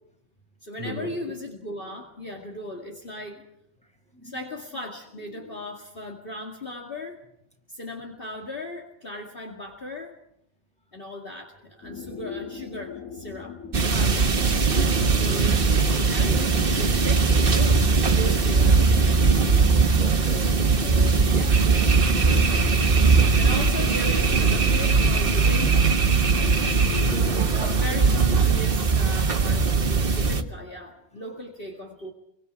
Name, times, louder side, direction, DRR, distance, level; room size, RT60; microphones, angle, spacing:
voice 1, 0.6-3.4 4.2-7.2 7.7-10.2 10.9-13.6 13.9-14.4 15.1-18.9 20.6-25.9 27.5-32.1, left 1 dB, 40° left, 0 dB, 2.5 m, -37 dB
sound 1, 11.8-30.0, left 7 dB, 75° left, 2.0 m, -40 dB
sound 2, 13.7-30.4, right 4 dB, 40° right, 1.4 m, -20 dB
voice 2, 19.2-20.5 26.1-27.7, left 2 dB, 5° left, 1 dB, 5.0 m, -39 dB
29.0 x 24.0 x 4.7 m, 0.78 s
omnidirectional pair, 1.4 m